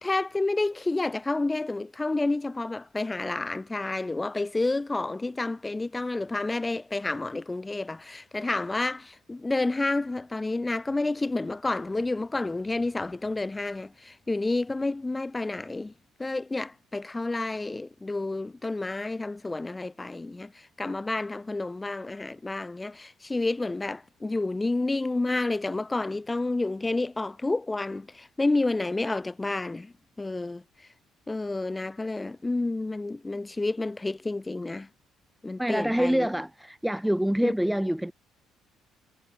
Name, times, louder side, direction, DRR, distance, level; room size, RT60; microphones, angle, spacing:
voice 1, 0.0-15.9 16.2-30.6 31.3-34.9 35.4-36.3 37.4-37.5, left 2 dB, 15° left, 2.5 m, -30 dB
voice 2, 35.6-38.1, equal, 5° right, 0.9 m, -26 dB
cardioid pair, 100°, 0 cm